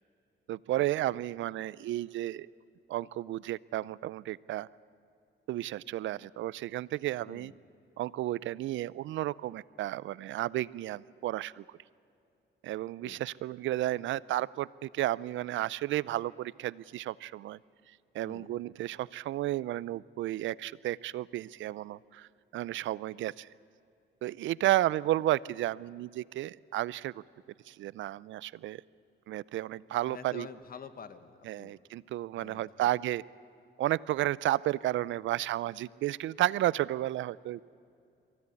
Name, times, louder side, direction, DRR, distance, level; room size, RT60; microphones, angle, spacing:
voice 1, 0.5-2.5 2.9-4.7 5.5-7.5 8.0-11.6 12.6-17.6 18.1-23.5 24.2-27.2 27.7-28.8 29.3-30.5 31.5-33.2 33.8-37.6, right 14 dB, 75° right, 21 dB, 0.5 m, -32 dB
voice 2, 7.3-7.6 13.0-13.2 18.2-18.5 24.6-24.8 30.1-31.7 32.3-32.9, left 6 dB, 45° left, 11 dB, 1.6 m, -48 dB
23.5 x 16.0 x 9.7 m, 2.6 s
cardioid pair, 90°, 20 cm